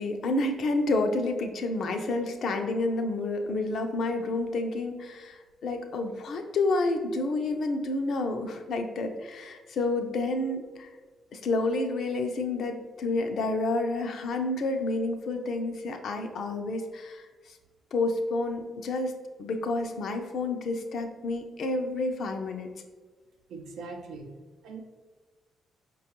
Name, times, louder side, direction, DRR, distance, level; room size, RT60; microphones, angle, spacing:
voice 1, 0.0-10.9 11.3-17.6 17.9-19.1 19.4-22.7, left 2 dB, 65° left, 5 dB, 0.4 m, -29 dB
voice 2, 23.5-24.3 24.6-24.8, right 4 dB, 75° right, 3 dB, 0.5 m, -41 dB
4.8 x 2.3 x 2.9 m, 1.4 s
supercardioid pair, 55°, 0 cm